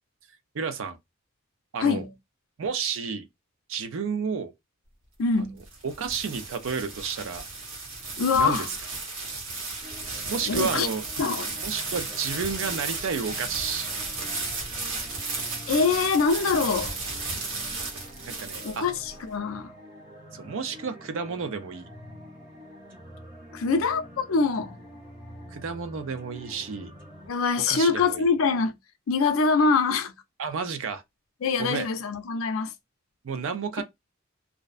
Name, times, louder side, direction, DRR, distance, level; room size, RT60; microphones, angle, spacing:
voice 1, 0.5-1.0 1.7-2.0 2.6-3.3 3.7-4.5 5.8-7.4 8.3-8.7 10.3-11.0 11.6-13.9 18.3-18.9 20.3-21.9 25.5-26.9 27.7-28.2 30.4-31.0 31.6-31.9 33.2-33.8, right 5 dB, 65° right, 0.5 m, -31 dB
voice 2, 1.8-2.1 5.2-5.6 8.2-8.7 10.5-10.9 11.2-11.6 15.7-17.0 18.6-19.7 23.5-24.8 27.3-28.7 29.1-30.1 31.4-32.7, left 4 dB, 75° left, 0.5 m, -24 dB
sound 1, 5.4-19.2, right 3 dB, 80° right, 0.9 m, -34 dB
sound 2, 9.8-27.3, equal, 40° right, 1.3 m, -47 dB
2.5 x 2.0 x 2.4 m
head